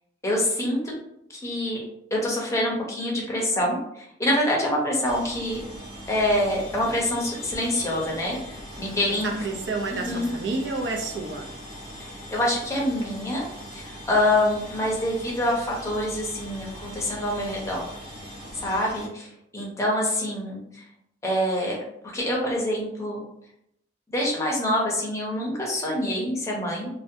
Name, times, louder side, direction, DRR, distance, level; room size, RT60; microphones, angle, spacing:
voice 1, 0.2-0.8 1.3-1.8 2.1-5.6 6.1-9.3 10.0-10.3 12.0-13.5 13.7-17.9 18.6-20.8 21.2-21.8 22.1-23.2 24.1-26.9, left 1 dB, 15° left, -3 dB, 0.6 m, -26 dB
sound 1, 5.0-19.1, equal, 30° right, 0.9 m, -41 dB
voice 2, 9.2-11.5, right 3 dB, 70° right, 2 dB, 0.5 m, -29 dB
2.6 x 2.1 x 2.6 m, 0.77 s
head